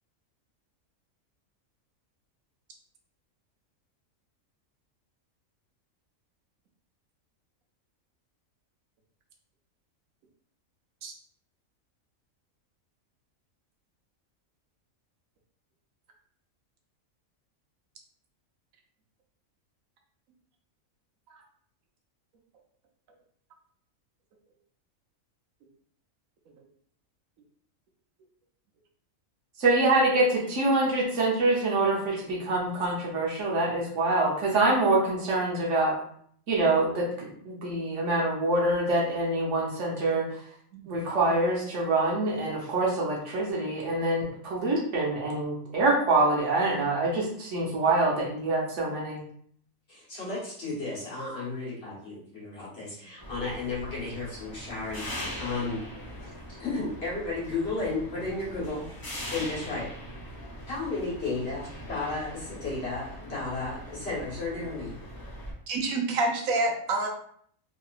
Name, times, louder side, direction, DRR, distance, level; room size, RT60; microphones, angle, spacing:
voice 1, 29.6-35.9 36.5-40.4 40.9-49.2, right 2 dB, 65° right, -2 dB, 1.1 m, -25 dB
voice 2, 49.9-55.8 56.5-58.9 59.3-59.9 60.7-64.9, left 3 dB, 50° left, -6 dB, 1.4 m, -33 dB
sound 1, 53.2-65.5, equal, 20° left, 0.6 m, -41 dB
voice 3, 65.7-67.1, right 2 dB, 90° right, 1 dB, 1.1 m, -27 dB
3.1 x 2.8 x 2.4 m, 0.62 s
omnidirectional pair, 1.4 m